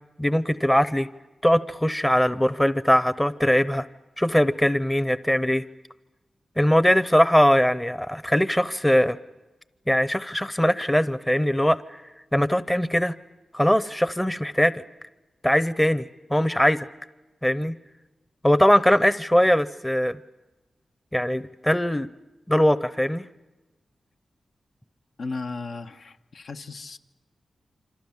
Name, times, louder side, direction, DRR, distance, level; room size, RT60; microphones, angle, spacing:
voice 1, 0.2-1.1 1.4-3.9 4.2-5.6 6.6-9.2 9.9-11.8 12.3-13.1 13.5-14.8 15.4-16.9 17.4-17.8 18.4-20.2 21.1-22.1 22.5-23.3, equal, 10° left, 15 dB, 0.8 m, -21 dB
voice 2, 25.2-27.0, left 3 dB, 70° left, 6 dB, 1.2 m, -35 dB
27.5 x 26.0 x 7.3 m, 1.1 s
wide cardioid pair, 105°, 0 cm